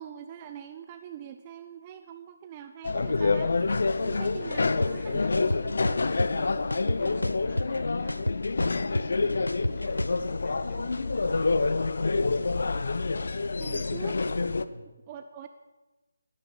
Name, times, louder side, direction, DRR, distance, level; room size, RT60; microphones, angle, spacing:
voice 1, 0.0-3.6 4.0-5.2 13.6-14.2 15.1-15.5, right 9 dB, 25° right, 8 dB, 0.7 m, -43 dB
sound 1, 2.8-14.6, left 3 dB, 60° left, 0.8 m, -27 dB
voice 2, 3.9-11.3 14.6-14.9, left 1 dB, 25° left, -3 dB, 6.5 m, -45 dB
sound 2, 4.8-4.9 5.3-6.3 6.7-7.8 8.1-10.2, left 1 dB, 90° left, 0.4 m, -29 dB
17.5 x 10.5 x 7.1 m, 1.2 s
figure-of-eight pair, 150°, 0 cm